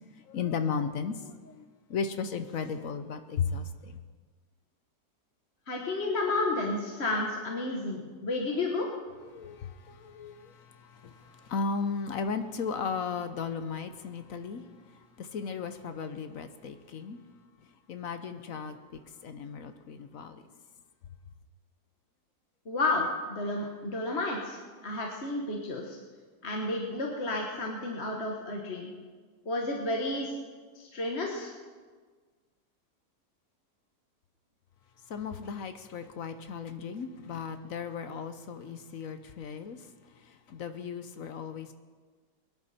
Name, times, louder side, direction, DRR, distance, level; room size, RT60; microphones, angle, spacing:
voice 1, 0.3-4.0 9.2-17.2 17.9-20.4 35.1-39.8 40.2-41.7, left 5 dB, 60° left, 9 dB, 1.0 m, -36 dB
voice 2, 5.7-8.9 22.6-26.0 26.4-28.9 29.4-30.3 30.7-31.5, left 2 dB, 40° left, 0 dB, 1.5 m, -31 dB
21.0 x 10.5 x 4.2 m, 1.5 s
omnidirectional pair, 1.9 m